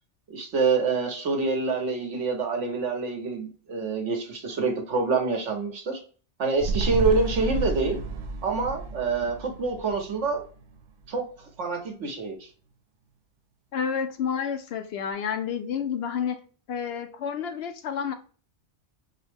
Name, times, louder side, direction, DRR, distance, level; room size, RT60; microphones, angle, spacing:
voice 1, 0.3-6.0 6.4-8.0 8.4-10.4 11.1-11.2 11.6-12.5, right 4 dB, 85° right, 1.3 m, -26 dB
sound 1, 6.6-11.1 11.4-11.5, right 3 dB, 55° right, 0.5 m, -32 dB
voice 2, 13.7-16.4 16.7-18.1, left 7 dB, 65° left, 0.8 m, -30 dB
4.6 x 2.1 x 3.2 m
omnidirectional pair, 1.2 m